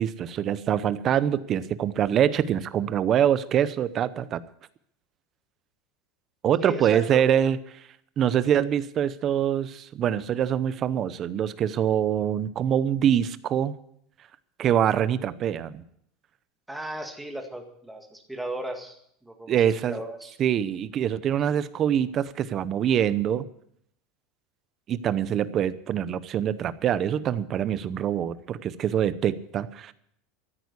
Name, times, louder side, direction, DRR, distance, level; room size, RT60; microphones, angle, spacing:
voice 1, 0.0-4.4 6.4-7.6 8.2-13.7 14.6-15.8 19.5-20.0 20.4-23.5 24.9-29.9, right 9 dB, 30° right, 16 dB, 0.7 m, -24 dB
voice 2, 6.6-7.3 16.7-19.5 19.8-20.3, right 1 dB, 5° right, 4 dB, 1.9 m, -36 dB
14.0 x 9.3 x 8.3 m, 0.69 s
supercardioid pair, 155°, 0 cm